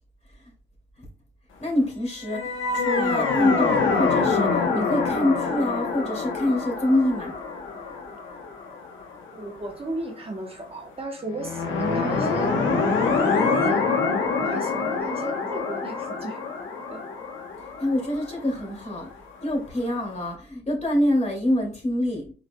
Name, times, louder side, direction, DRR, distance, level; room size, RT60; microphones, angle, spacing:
voice 1, 1.6-7.3 17.8-19.1 19.4-22.3, left 1 dB, 35° left, 0 dB, 2.4 m, -25 dB
sound 1, 2.2-9.5 11.3-19.1, left 4 dB, 85° left, 1.0 m, -26 dB
voice 2, 9.3-12.5 12.9-14.0 14.4-16.4 16.9-17.0, right 2 dB, 30° right, 1 dB, 1.0 m, -35 dB
4.9 x 4.6 x 2.2 m, 0.38 s
cardioid pair, 80°, 20 cm